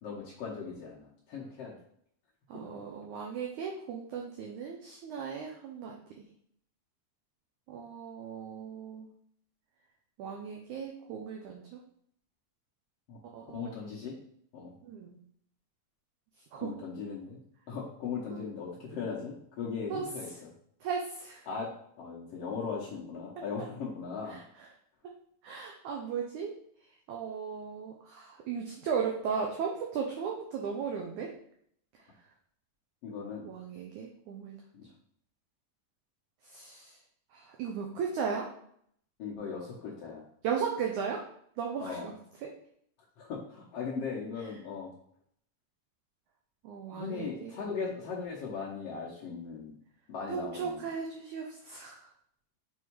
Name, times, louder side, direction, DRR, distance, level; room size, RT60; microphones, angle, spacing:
voice 1, 0.0-1.7 13.1-13.2 13.5-14.2 14.5-14.7 16.6-17.4 17.7-20.5 21.5-24.4 33.0-33.4 34.7-34.9 39.2-40.2 41.8-42.1 43.2-44.9 46.9-49.7 50.1-50.8, left 5 dB, 85° left, -5 dB, 1.4 m, -38 dB
voice 2, 2.5-6.3 7.7-9.1 10.2-11.8 13.3-13.7 14.8-15.2 16.5-16.9 18.3-18.5 19.9-20.1 20.8-21.5 23.4-23.5 24.3-24.7 25.0-25.1 25.4-26.6 27.1-31.3 33.4-34.6 36.4-37.0 37.3-38.5 40.4-41.3 41.6-42.1 42.4-42.5 46.6-47.6 50.3-52.1, right 6 dB, 80° right, 0 dB, 1.7 m, -36 dB
6.3 x 3.6 x 4.6 m, 0.66 s
omnidirectional pair, 4.3 m